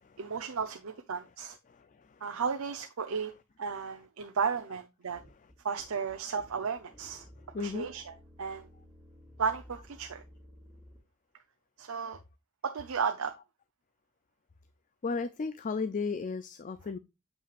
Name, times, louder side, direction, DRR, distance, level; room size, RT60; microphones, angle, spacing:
voice 1, 0.2-1.6 2.2-3.3 3.6-5.2 5.6-7.3 7.6-8.1 8.4-8.7 9.4-10.2 11.8-12.2 12.6-13.3, right 6 dB, 85° right, 0.7 m, -34 dB
voice 2, 1.7-2.2 7.5-7.9 15.0-17.0, left 4 dB, 35° left, 0.4 m, -35 dB
sound 1, 5.1-11.0, equal, 10° left, 2.3 m, -55 dB
7.6 x 5.6 x 2.4 m
head